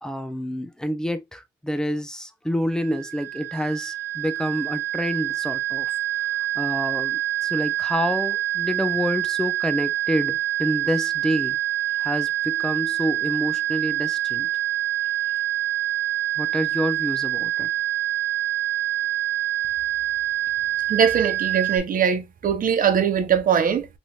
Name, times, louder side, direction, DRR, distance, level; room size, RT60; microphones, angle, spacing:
voice 1, 0.0-5.9 6.6-11.6 12.0-14.5 16.4-17.7, equal, 5° left, 0.5 m, -28 dB
sound 1, 2.7-21.8, right 14 dB, 85° right, 1.3 m, -26 dB
voice 2, 20.9-23.9, right 7 dB, 45° right, 0.7 m, -21 dB
3.2 x 2.9 x 2.3 m
cardioid pair, 90°, 20 cm